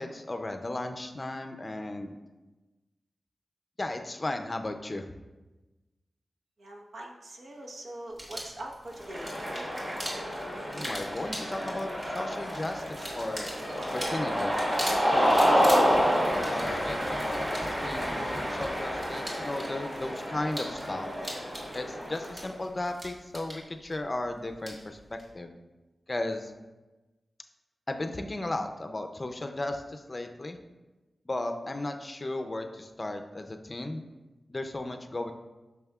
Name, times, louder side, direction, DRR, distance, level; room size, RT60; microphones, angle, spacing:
voice 1, 0.0-2.1 3.8-5.1 10.6-13.5 13.9-15.4 16.5-21.1 21.7-25.6 26.1-26.5 27.9-30.6 31.3-34.0 34.5-35.3, left 2 dB, 30° left, 6 dB, 0.5 m, -35 dB
voice 2, 6.6-9.3, right 1 dB, 75° right, 0 dB, 1.0 m, -42 dB
sound 1, 8.1-25.3, equal, 40° right, 1.9 m, -42 dB
Cheering, 9.0-22.4, equal, 20° right, 1.7 m, -29 dB
9.0 x 5.9 x 2.4 m, 1.1 s
wide cardioid pair, 115°, 0 cm